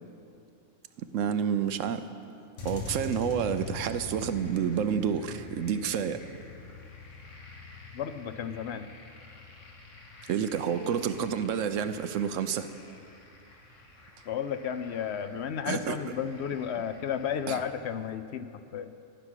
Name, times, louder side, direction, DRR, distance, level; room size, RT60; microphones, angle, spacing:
voice 1, 1.0-2.0 2.6-6.2 10.3-12.7 15.7-16.0 17.5-17.6, right 8 dB, 85° right, 11 dB, 1.0 m, -29 dB
sound 1, 2.6-17.7, left 3 dB, 80° left, 1.7 m, -45 dB
voice 2, 7.9-8.9 14.3-19.1, left 8 dB, 65° left, 10 dB, 0.8 m, -33 dB
15.0 x 6.1 x 9.8 m, 2.5 s
omnidirectional pair, 1.3 m